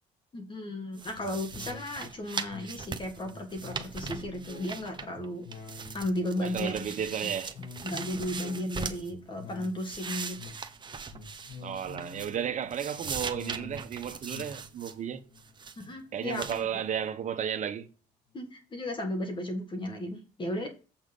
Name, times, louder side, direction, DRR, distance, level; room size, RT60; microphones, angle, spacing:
voice 1, 0.3-5.5 5.9-6.8 7.2-7.3 7.8-10.4 15.8-16.8 18.3-20.7, left 1 dB, 30° left, 1.8 m, -35 dB
sound 1, 1.0-5.3 5.5-9.1 9.5-12.4 12.7-14.9 15.4-15.8 16.3-16.6, right 5 dB, 25° right, 1.0 m, -40 dB
sound 2, 1.1-16.9 17.3-17.4, left 4 dB, 60° left, 1.9 m, -48 dB
voice 2, 6.4-7.5 11.6-15.2 16.1-17.9, right 8 dB, 45° right, 1.2 m, -33 dB
7.9 x 5.9 x 5.4 m
cardioid pair, 110°, 17 cm